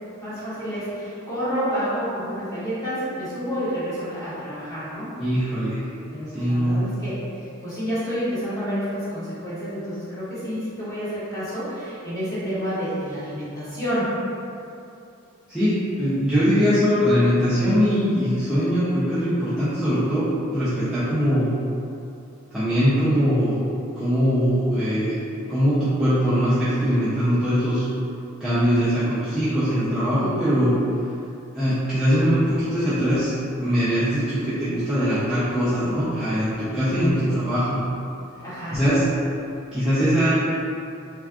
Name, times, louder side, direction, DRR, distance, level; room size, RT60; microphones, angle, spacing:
voice 1, 0.2-5.1 6.1-7.2 7.6-14.1 38.4-38.8, equal, 15° left, -12 dB, 1.1 m, -29 dB
voice 2, 5.2-5.9 6.3-6.8 15.5-21.5 22.5-23.6 24.0-25.2 25.5-27.9 28.4-30.8 31.5-33.3 33.6-37.8 38.7-39.0 39.7-40.3, equal, 5° right, -14 dB, 0.5 m, -21 dB
3.4 x 2.4 x 2.3 m, 2.6 s
head